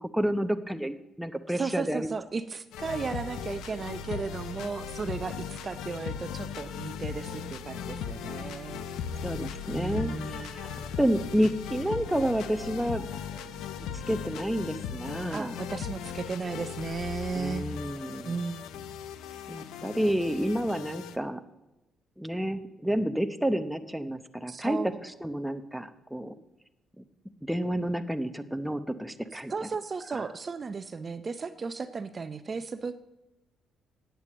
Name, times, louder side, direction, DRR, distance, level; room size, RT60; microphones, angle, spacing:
voice 1, 0.0-2.1 9.2-10.7 11.0-13.1 14.1-15.6 17.3-18.4 19.5-21.4 22.2-26.3 27.0-27.1 27.5-29.7 30.1-30.2, equal, 5° right, 9 dB, 0.7 m, -30 dB
voice 2, 1.5-8.8 9.7-10.6 15.3-17.6 18.3-18.7 19.3-19.4 24.5-24.9 29.5-33.0, right 4 dB, 35° right, 11 dB, 0.5 m, -35 dB
sound 1, 2.7-21.2, left 8 dB, 90° left, 0.6 m, -38 dB
sound 2, 3.1-15.3, right 2 dB, 15° left, 1.7 m, -49 dB
sound 3, 7.2-16.7, equal, 70° left, 4.0 m, -54 dB
9.1 x 8.3 x 7.3 m, 0.99 s
cardioid pair, 90°, 0 cm